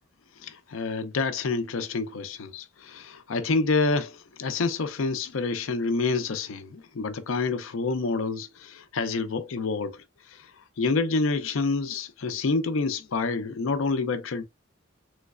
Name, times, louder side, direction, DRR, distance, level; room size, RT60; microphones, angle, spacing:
voice 1, 0.4-14.4, left 4 dB, 85° left, 0.5 m, -28 dB
3.2 x 3.1 x 2.4 m
head